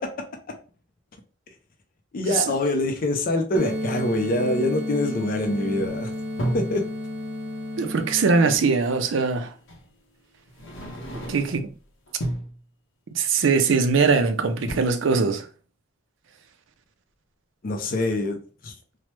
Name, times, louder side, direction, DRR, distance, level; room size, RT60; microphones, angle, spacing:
voice 1, 2.1-6.1 6.5-6.8 17.6-18.4 18.6-18.7, left 2 dB, 45° left, 0.5 m, -25 dB
sound 1, 3.5-8.5, left 1 dB, 15° right, 0.7 m, -31 dB
sound 2, 5.8-6.8 8.5-8.6 9.7-9.9 10.5-11.7 12.1-12.6 13.9-14.3 14.5-14.8, right 1 dB, 85° left, 0.8 m, -32 dB
voice 2, 7.8-9.5 11.3-11.7 13.1-15.5, right 4 dB, 75° right, 0.5 m, -21 dB
3.1 x 2.1 x 3.0 m
head